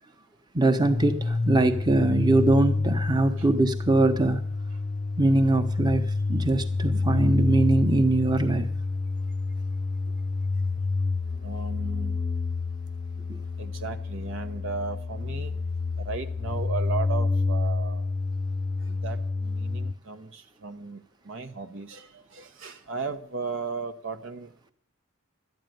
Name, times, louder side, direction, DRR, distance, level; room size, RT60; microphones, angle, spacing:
voice 1, 0.5-4.4 5.2-8.7, right 2 dB, 20° right, 6 dB, 1.0 m, -22 dB
sound 1, 0.7-19.9, left 3 dB, 35° left, 0.6 m, -28 dB
voice 2, 11.4-12.2 13.6-15.6 16.0-18.0 18.9-22.1 22.3-24.7, right 4 dB, 65° right, 7 dB, 0.9 m, -36 dB
12.5 x 9.3 x 9.2 m, 0.67 s
head